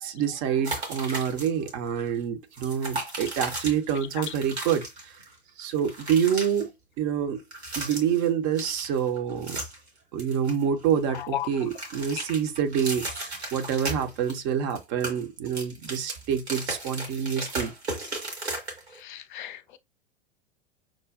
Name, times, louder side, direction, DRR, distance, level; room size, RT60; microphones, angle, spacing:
voice 1, 0.0-5.1 5.6-6.7 7.0-7.4 7.8-9.6 10.1-17.7, right 8 dB, 40° right, 0.7 m, -27 dB
sound 1, 0.6-1.7 2.0-2.1 2.5-5.3 5.6-6.6 7.4-8.3 8.6-9.9 10.2-11.2 11.5-14.4 14.7-19.0, right 2 dB, 80° right, 1.6 m, -36 dB
voice 2, 19.0-19.8, left 12 dB, 50° left, 0.5 m, -34 dB
6.0 x 2.2 x 2.4 m
figure-of-eight pair, 90°, 32 cm